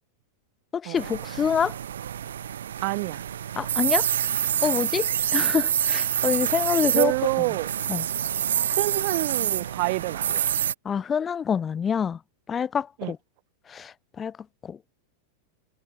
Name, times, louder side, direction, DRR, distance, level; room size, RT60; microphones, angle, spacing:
voice 1, 0.7-1.8 3.6-4.1 4.6-7.1 7.9-8.1 10.9-12.2 12.5-13.2 13.7-14.4 14.6-14.8, left 7 dB, 20° left, 1.6 m, -26 dB
sound 1, 1.0-10.7, right 9 dB, 65° right, 1.6 m, -27 dB
voice 2, 2.8-3.2 6.9-7.7 8.6-10.5 13.0-13.1, right 28 dB, 45° right, 1.0 m, -27 dB
figure-of-eight pair, 90°, 0 cm